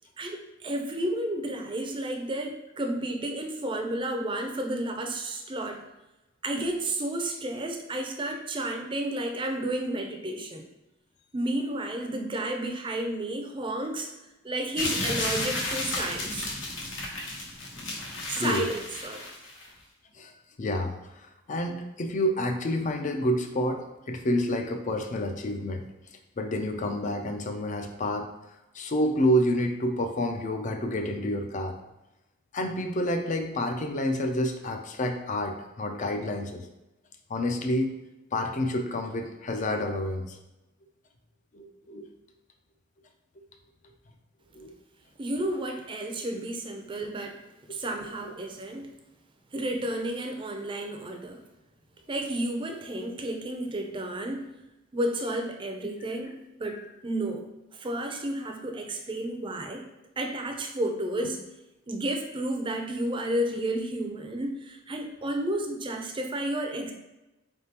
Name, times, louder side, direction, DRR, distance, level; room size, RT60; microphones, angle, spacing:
voice 1, 0.2-5.8 6.4-10.7 11.3-14.1 14.4-16.5 18.3-19.3 45.2-47.4 47.7-48.9 49.5-51.4 52.1-54.5 54.9-59.8 60.2-61.4 61.9-66.9, right 1 dB, 25° right, 3 dB, 0.5 m, -32 dB
sound 1, 14.8-19.7, left 2 dB, 75° left, 0.9 m, -33 dB
voice 2, 18.1-18.7 20.1-20.3 20.6-25.8 26.4-28.3 28.7-31.8 32.5-36.6 37.3-37.9 38.3-40.4 41.5-42.1 44.5-44.7 45.4-45.5, left 1 dB, 40° left, 5 dB, 0.5 m, -29 dB
4.0 x 3.6 x 2.9 m, 0.96 s
head